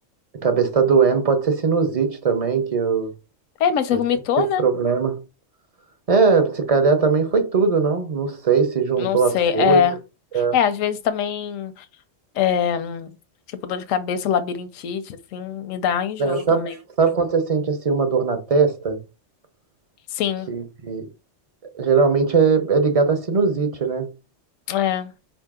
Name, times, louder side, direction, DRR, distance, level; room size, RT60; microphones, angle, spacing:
voice 1, 0.4-3.1 4.4-5.2 6.1-9.8 10.3-10.5 16.2-19.0 20.5-21.1 21.7-24.1, right 5 dB, 40° right, 0.5 m, -20 dB
voice 2, 3.6-4.6 9.0-9.9 10.5-11.8 12.4-13.1 13.6-16.8 20.1-20.5 24.7-25.1, left 8 dB, 85° left, 1.0 m, -23 dB
4.9 x 2.7 x 3.5 m
omnidirectional pair, 1.3 m